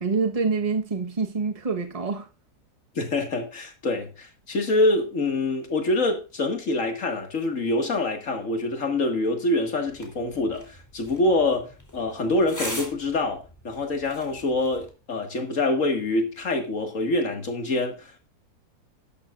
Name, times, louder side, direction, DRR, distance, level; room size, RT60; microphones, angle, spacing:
voice 1, 0.0-2.3, right 4 dB, 25° right, 1.2 m, -26 dB
voice 2, 3.0-18.2, left 2 dB, 55° left, 2.3 m, -25 dB
sound 1, 9.9-14.9, left 1 dB, 10° left, 2.9 m, -41 dB
12.0 x 11.5 x 2.5 m
omnidirectional pair, 1.7 m